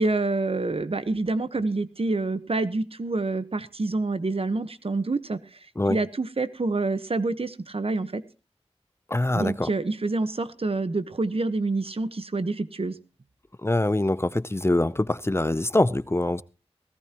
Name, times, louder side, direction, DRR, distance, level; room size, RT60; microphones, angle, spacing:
voice 1, 0.0-5.4 5.9-8.2 9.3-13.0, right 3 dB, 65° right, 1.2 m, -27 dB
voice 2, 9.1-9.7 13.6-16.4, left 1 dB, 25° left, 0.6 m, -24 dB
18.0 x 17.0 x 3.0 m
wide cardioid pair, 40°, 11 cm